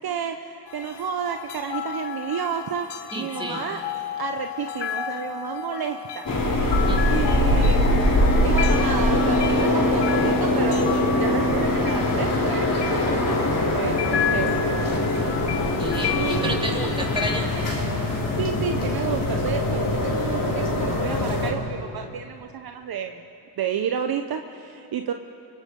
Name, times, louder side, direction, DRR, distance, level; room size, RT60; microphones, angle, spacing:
voice 1, 0.0-3.8 4.2-6.3 7.1-8.2 8.4-14.7 16.2-16.6 18.4-23.2 23.6-25.1, right 8 dB, 50° right, 6 dB, 1.1 m, -31 dB
sound 1, 0.7-17.4, left 9 dB, 60° left, 2.0 m, -33 dB
voice 2, 3.1-3.6 6.8-7.1 15.8-17.5, right 1 dB, 10° right, -1 dB, 4.0 m, -31 dB
sound 2, 6.3-21.5, left 1 dB, 45° left, 4.9 m, -22 dB
28.0 x 24.5 x 5.4 m, 2.7 s
cardioid pair, 85°, 46 cm